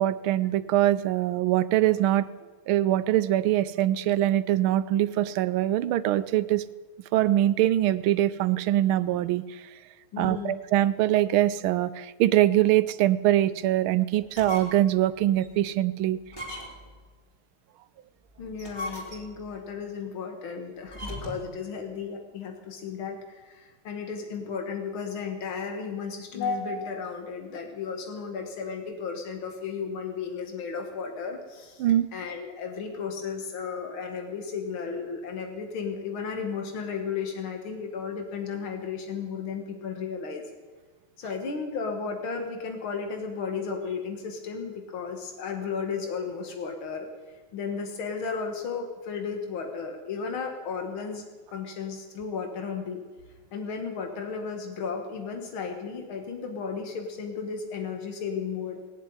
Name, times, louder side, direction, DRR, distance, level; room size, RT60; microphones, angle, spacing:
voice 1, 0.0-2.3 2.7-6.6 7.1-9.4 10.2-16.2 31.8-32.1, right 13 dB, 85° right, 15 dB, 1.5 m, -23 dB
voice 2, 10.1-10.6 18.4-23.2 23.4-31.8 32.1-40.4 41.2-47.1 47.5-51.2 51.5-53.0 53.5-58.8, left 5 dB, 80° left, 4 dB, 2.4 m, -34 dB
sound 1, 14.2-14.9 15.4-15.5 16.3-17.0 18.4-19.5 20.9-21.5, left 1 dB, 10° left, 3.7 m, -38 dB
19.5 x 7.6 x 9.5 m, 1.3 s
omnidirectional pair, 2.2 m